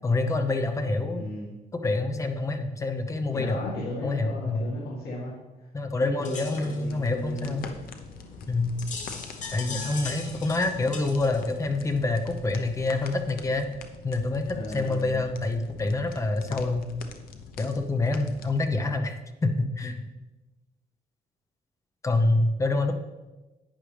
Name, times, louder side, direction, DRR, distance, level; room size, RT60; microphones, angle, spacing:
voice 1, 0.0-1.2 1.7-3.6 4.0-4.7 5.7-7.7 8.5-8.8 9.5-13.7 14.0-16.9 17.6-20.1 22.0-22.9, left 2 dB, 20° left, 6 dB, 0.8 m, -27 dB
voice 2, 1.1-1.5 3.3-5.7 6.0-7.6 9.6-9.9 14.5-15.2, left 2 dB, 85° left, -5 dB, 2.1 m, -35 dB
sound 1, 6.2-13.1, left 4 dB, 50° left, 1.6 m, -41 dB
sound 2, 6.8-18.8, left 5 dB, 70° left, 0.9 m, -44 dB
11.0 x 9.1 x 3.4 m, 1.1 s
cardioid pair, 175°, 16 cm